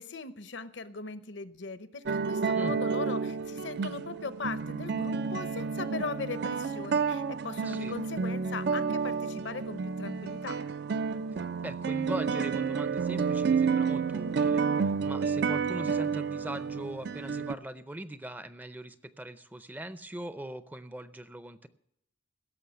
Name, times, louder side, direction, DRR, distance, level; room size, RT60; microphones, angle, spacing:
voice 1, 0.0-10.6, left 4 dB, 70° left, 12 dB, 0.8 m, -39 dB
sound 1, 2.1-17.5, right 5 dB, 60° right, 0.5 m, -30 dB
voice 2, 7.6-8.0 11.6-14.7 15.0-21.7, right 1 dB, 10° right, 12 dB, 0.5 m, -40 dB
16.5 x 6.7 x 7.9 m, 0.79 s
head